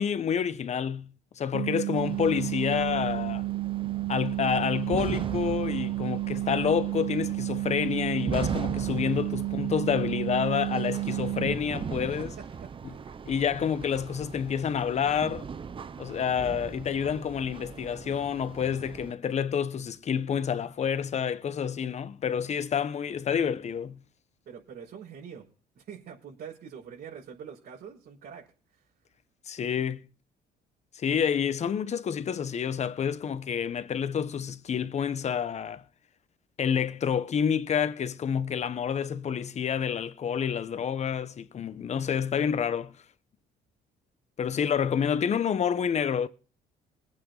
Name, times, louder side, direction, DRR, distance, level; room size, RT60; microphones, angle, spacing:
voice 1, 0.0-3.5 4.1-12.3 12.8-12.9 13.3-15.5 16.0-24.0 29.5-30.1 30.9-35.8 36.6-43.0 44.4-46.3, left 7 dB, 40° left, 1.2 m, -28 dB
sound 1, 1.5-11.5, right 17 dB, 90° right, 0.8 m, -31 dB
sound 2, 2.0-19.1, right 6 dB, 30° right, 0.8 m, -39 dB
voice 2, 12.4-13.1 24.5-25.5 25.7-28.5 28.7-28.8, right 7 dB, 65° right, 5.6 m, -45 dB
21.5 x 8.6 x 4.1 m
cardioid pair, 110°, 17 cm